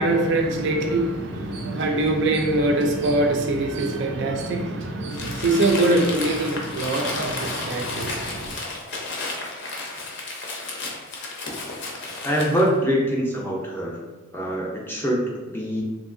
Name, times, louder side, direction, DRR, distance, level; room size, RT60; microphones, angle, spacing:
voice 1, 0.0-8.6, right 2 dB, 55° right, 3 dB, 0.4 m, -23 dB
Crumpling crinkling, 5.1-12.7, left 2 dB, 55° left, 0.6 m, -32 dB
voice 2, 12.2-14.0 14.3-15.8, equal, 10° left, -3 dB, 0.4 m, -24 dB
3.0 x 2.7 x 2.5 m, 1.2 s
head